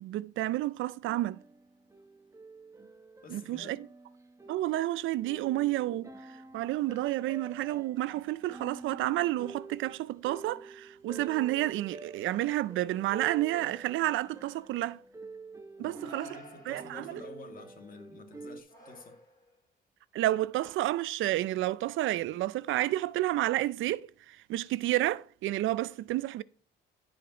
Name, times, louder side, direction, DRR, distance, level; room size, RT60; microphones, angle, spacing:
voice 1, 0.0-1.4 3.3-3.9 4.5-15.0 15.8-16.3 16.7-17.2 20.1-26.4, right 15 dB, 80° right, 0.5 m, -30 dB
sound 1, 1.0-18.6, right 3 dB, 15° right, 1.0 m, -48 dB
voice 2, 3.2-3.7 15.8-19.2, left 4 dB, 45° left, 2.4 m, -50 dB
sound 2, 14.0-14.7 15.7-17.2 18.7-19.6, right 2 dB, 20° left, 4.6 m, -52 dB
15.0 x 5.1 x 3.0 m
cardioid pair, 90°, 20 cm